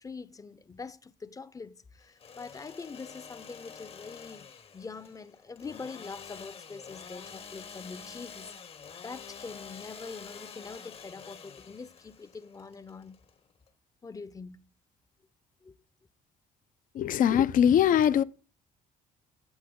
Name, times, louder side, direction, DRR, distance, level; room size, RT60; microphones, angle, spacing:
voice 1, 0.0-4.5 4.7-8.5 9.0-13.2 14.0-14.7 15.6-15.8, left 4 dB, 20° left, 0.7 m, -44 dB
Engine / Sawing, 2.0-13.7, left 6 dB, 40° left, 1.0 m, -48 dB
voice 2, 16.9-18.2, left 9 dB, 65° left, 0.7 m, -22 dB
14.5 x 8.5 x 3.8 m
cardioid pair, 105°, 15 cm